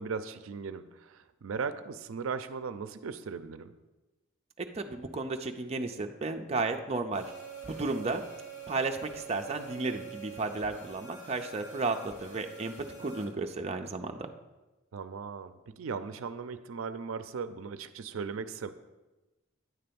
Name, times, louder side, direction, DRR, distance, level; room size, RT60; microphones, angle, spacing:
voice 1, 0.0-3.7 14.9-18.7, right 5 dB, 80° right, 12 dB, 0.5 m, -38 dB
voice 2, 4.6-7.3 7.6-8.2 8.7-14.3, right 3 dB, 30° right, 4 dB, 0.5 m, -33 dB
sound 1, 7.1-13.2, right 5 dB, 60° left, 2.8 m, -46 dB
9.5 x 3.3 x 6.9 m, 1.1 s
head